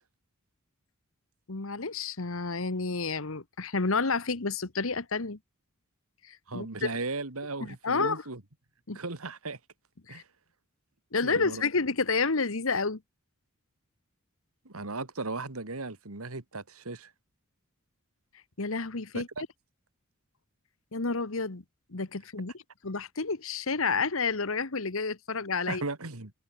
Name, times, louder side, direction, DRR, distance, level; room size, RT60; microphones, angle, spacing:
voice 1, 1.5-5.4 6.2-6.9 7.6-8.2 8.9-9.0 10.1-10.2 11.1-13.0 18.6-19.3 20.9-21.6 21.9-22.5 22.8-25.8, left 4 dB, 70° left, 1.4 m, -30 dB
voice 2, 6.5-8.4 8.9-9.6 10.1-10.2 11.2-11.6 14.7-17.1 19.1-19.4 25.7-26.3, right 3 dB, 80° right, 2.2 m, -36 dB
head